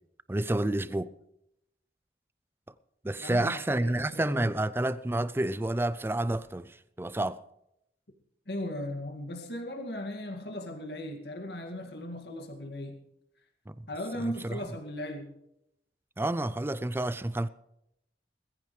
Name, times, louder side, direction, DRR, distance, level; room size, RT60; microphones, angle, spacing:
voice 1, 0.3-1.1 3.0-7.4 13.7-13.9 14.1-14.6 16.2-17.5, right 1 dB, 15° right, 0.4 m, -29 dB
voice 2, 3.2-4.5 8.5-13.0 13.9-15.3, left 1 dB, 65° left, 2.2 m, -37 dB
20.0 x 15.0 x 3.3 m
head